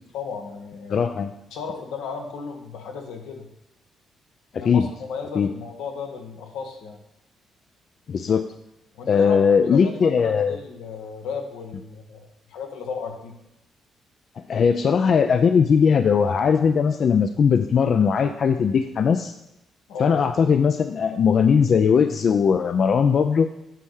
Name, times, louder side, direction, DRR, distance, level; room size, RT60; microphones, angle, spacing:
voice 1, 0.1-1.0 1.5-3.5 4.5-7.0 8.9-9.4 9.6-13.3 19.9-20.2, left 5 dB, 90° left, 2 dB, 1.6 m, -34 dB
voice 2, 0.9-1.3 4.6-4.9 5.3-5.5 8.1-8.4 9.1-10.6 14.5-19.3 20.0-23.5, left 6 dB, 55° left, 8 dB, 0.5 m, -19 dB
9.2 x 4.2 x 6.5 m, 0.89 s
cardioid pair, 90°, 0 cm